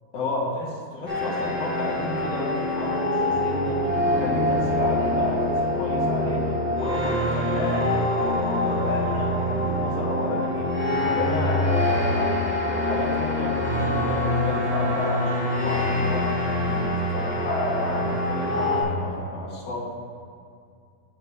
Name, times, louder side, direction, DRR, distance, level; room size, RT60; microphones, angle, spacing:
voice 1, 0.1-19.8, left 2 dB, 80° left, -4 dB, 2.3 m, -31 dB
sound 1, 1.1-18.8, left 1 dB, 5° right, 2.0 m, -25 dB
9.1 x 8.1 x 3.4 m, 2.3 s
omnidirectional pair, 2.0 m